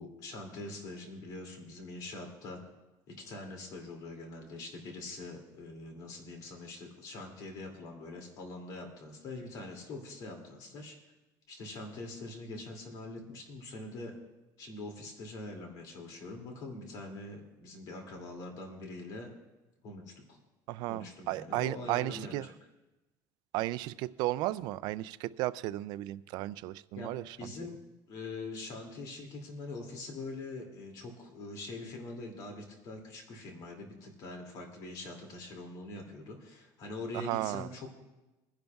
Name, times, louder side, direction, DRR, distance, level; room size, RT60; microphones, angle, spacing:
voice 1, 0.0-2.6 3.1-11.0 11.5-14.1 14.6-19.3 19.8-20.4 20.9-22.5 27.0-27.7 28.1-37.9, left 2 dB, 50° left, 2 dB, 2.5 m, -43 dB
voice 2, 20.7-22.5 23.5-27.5 37.1-37.7, right 16 dB, 65° right, 15 dB, 0.4 m, -34 dB
26.0 x 10.5 x 2.3 m, 1.1 s
cardioid pair, 150°, 8 cm